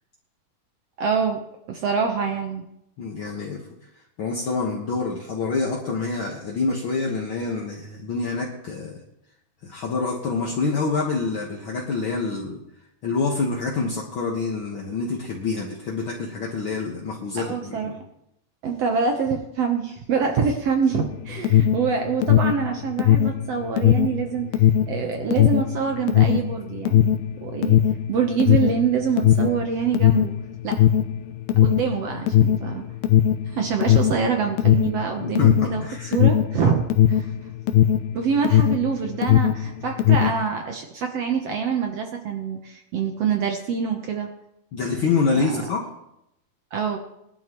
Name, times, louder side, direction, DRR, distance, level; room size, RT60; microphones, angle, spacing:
voice 1, 1.0-1.4 1.7-2.6 17.4-17.9 18.6-27.1 27.4-27.8 28.1-30.3 30.6-30.8 31.6-32.8 33.5-37.3 38.1-44.3 45.3-45.5 46.7-47.0, right 6 dB, 80° right, 3 dB, 1.4 m, -25 dB
voice 2, 3.0-3.6 4.2-9.0 9.6-12.6 13.0-18.0 35.2-36.2 44.7-45.8, left 4 dB, 60° left, -2 dB, 1.3 m, -26 dB
Alarm, 21.1-38.9 39.2-40.4, left 11 dB, 85° left, 2.6 m, -18 dB
20.5 x 12.0 x 3.1 m, 0.83 s
omnidirectional pair, 4.3 m